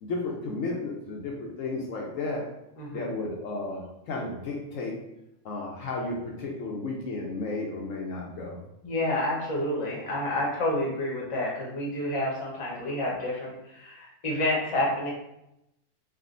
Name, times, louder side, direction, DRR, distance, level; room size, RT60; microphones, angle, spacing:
voice 1, 0.0-2.4 2.9-4.9 5.4-8.6, left 3 dB, 75° left, -1 dB, 0.9 m, -33 dB
voice 2, 2.8-3.1 8.8-15.1, left 1 dB, 30° left, -4 dB, 0.8 m, -29 dB
3.5 x 2.3 x 2.4 m, 0.85 s
omnidirectional pair, 1.4 m